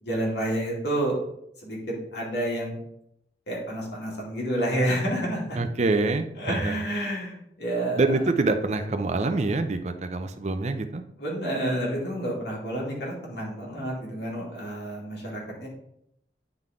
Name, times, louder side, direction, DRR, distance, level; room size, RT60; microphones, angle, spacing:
voice 1, 0.0-1.1 1.6-2.7 3.5-5.6 6.4-8.0 11.2-15.7, right 1 dB, 75° left, -4 dB, 2.4 m, -29 dB
voice 2, 5.6-6.7 8.0-11.0, right 2 dB, 40° right, 8 dB, 0.5 m, -25 dB
9.1 x 3.9 x 3.6 m, 0.76 s
head